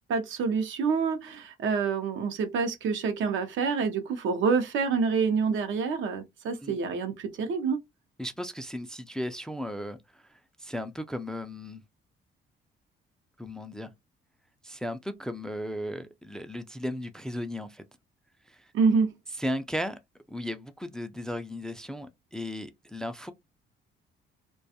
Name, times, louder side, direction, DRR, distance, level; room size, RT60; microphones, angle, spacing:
voice 1, 0.1-7.8 18.7-19.1, right 5 dB, 75° right, 0.6 m, -27 dB
voice 2, 8.2-11.8 13.4-13.9 14.6-17.8 18.5-18.7 19.4-20.0 20.3-23.3, left 1 dB, 5° left, 0.3 m, -36 dB
2.4 x 2.2 x 2.7 m
cardioid pair, 90°, 20 cm